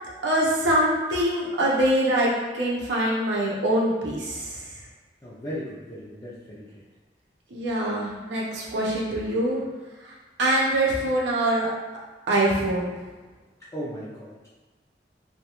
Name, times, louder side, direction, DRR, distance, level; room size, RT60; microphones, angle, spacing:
voice 1, 0.2-4.7 7.5-9.6 10.0-11.7 12.3-13.0, right 1 dB, 90° right, -4 dB, 0.6 m, -24 dB
voice 2, 5.2-6.7 13.6-14.5, equal, 20° left, -8 dB, 0.3 m, -36 dB
2.4 x 2.2 x 2.8 m, 1.3 s
head